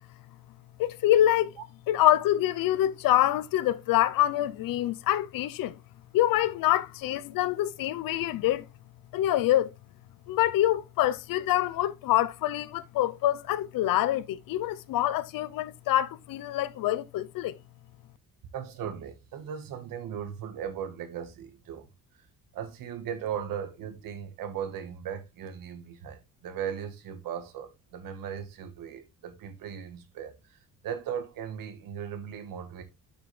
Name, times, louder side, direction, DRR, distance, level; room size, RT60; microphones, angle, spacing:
voice 1, 0.8-1.5 1.9-5.8 6.1-8.7 9.1-9.7 10.3-17.6, left 13 dB, 85° left, 0.7 m, -25 dB
voice 2, 18.5-21.9 22.5-30.6 30.8-32.8, right 8 dB, 80° right, 1.6 m, -37 dB
8.2 x 6.1 x 3.3 m
cardioid pair, 120°, 33 cm